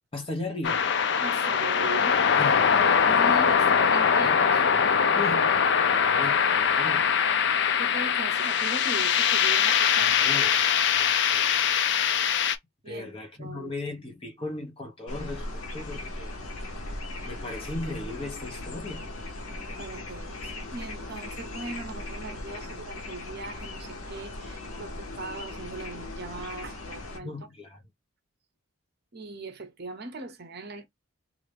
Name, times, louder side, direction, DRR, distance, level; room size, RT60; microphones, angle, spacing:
voice 1, 0.1-0.8 2.4-2.7 3.0-3.6 4.1-4.4 5.2-5.5 6.1-7.1 10.0-10.6 11.0-11.7 12.9-16.3 17.3-19.1 27.2-27.8, left 2 dB, 25° left, 0.9 m, -37 dB
sound 1, 0.6-12.6, left 7 dB, 55° left, 0.4 m, -22 dB
voice 2, 1.2-2.2 3.0-4.6 5.1-5.2 7.6-10.3 12.8-13.7 19.8-27.3 29.1-30.9, right 3 dB, 50° right, 0.7 m, -39 dB
sound 2, 15.1-27.2, left 2 dB, 90° left, 0.8 m, -38 dB
2.8 x 2.5 x 3.2 m
head